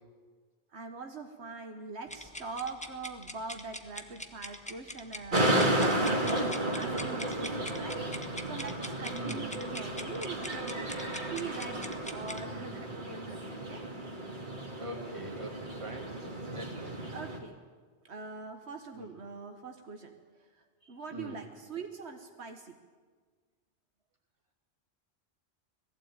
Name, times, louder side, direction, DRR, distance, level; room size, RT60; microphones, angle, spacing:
voice 1, 0.7-8.0 8.5-13.9 17.1-17.6 18.0-22.8, right 4 dB, 75° right, 5 dB, 1.5 m, -43 dB
sound 1, 2.1-12.4, left 1 dB, 5° left, 1.1 m, -43 dB
sound 2, 5.3-17.4, right 1 dB, 45° right, 2.4 m, -33 dB
voice 2, 9.1-9.5 14.8-16.1 16.5-17.0 18.9-19.1 20.8-21.4, right 1 dB, 30° right, -1 dB, 3.0 m, -42 dB
19.5 x 15.0 x 8.9 m, 1.5 s
omnidirectional pair, 1.1 m